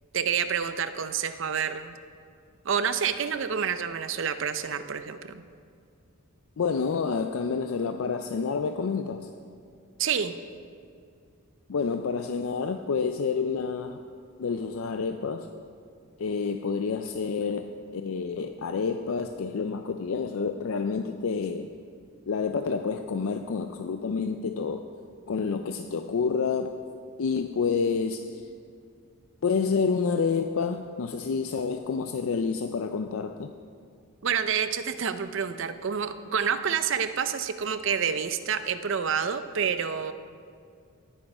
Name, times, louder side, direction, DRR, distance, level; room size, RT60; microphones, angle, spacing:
voice 1, 0.1-1.9 2.6-5.4 10.0-10.4 34.2-40.1, right 7 dB, 60° right, 11 dB, 0.5 m, -28 dB
voice 2, 6.6-9.3 11.7-14.0 14.4-15.5 16.2-21.7 22.3-24.9 25.3-26.8 27.2-28.4 29.4-33.5, left 5 dB, 70° left, 6 dB, 0.4 m, -28 dB
18.0 x 6.3 x 4.9 m, 2.3 s
head